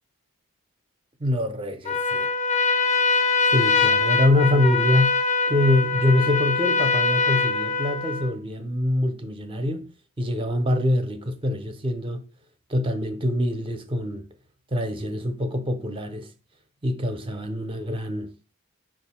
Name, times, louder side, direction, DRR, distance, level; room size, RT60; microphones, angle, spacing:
voice 1, 1.2-2.3 3.5-5.2 5.5-9.9 10.2-12.2 12.7-14.2 14.7-16.3 16.8-18.3, left 1 dB, 25° right, 0.5 m, -24 dB
Trumpet, 1.8-8.3, left 4 dB, 30° left, 0.4 m, -23 dB
5.3 x 2.4 x 4.1 m
head